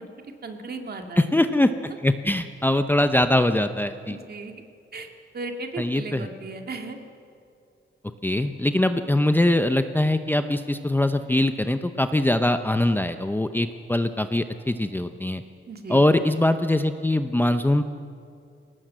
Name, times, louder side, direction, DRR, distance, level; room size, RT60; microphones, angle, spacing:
voice 1, 0.4-1.3 4.1-4.5 4.9-5.1 5.3-7.0 15.7-16.0, right 3 dB, 50° right, 4 dB, 2.2 m, -35 dB
voice 2, 1.2-4.2 5.8-6.3 8.2-15.4 15.9-17.8, left 1 dB, 10° left, 9 dB, 0.7 m, -22 dB
21.0 x 18.5 x 7.6 m, 2.3 s
cardioid pair, 105°, 21 cm